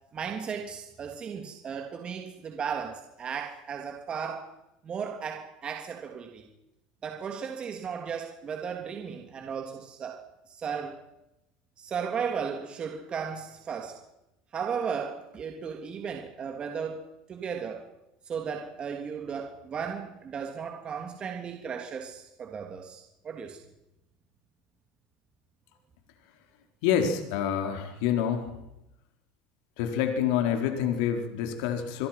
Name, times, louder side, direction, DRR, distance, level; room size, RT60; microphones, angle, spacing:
voice 1, 0.1-4.5 4.8-6.5 7.0-11.0 11.8-14.0 14.5-17.9 18.3-23.6, right 6 dB, 30° right, 3 dB, 3.2 m, -35 dB
voice 2, 26.8-28.6 29.8-32.1, left 8 dB, 75° left, 4 dB, 4.4 m, -27 dB
29.0 x 22.5 x 6.0 m, 0.90 s
supercardioid pair, 135°, 3 cm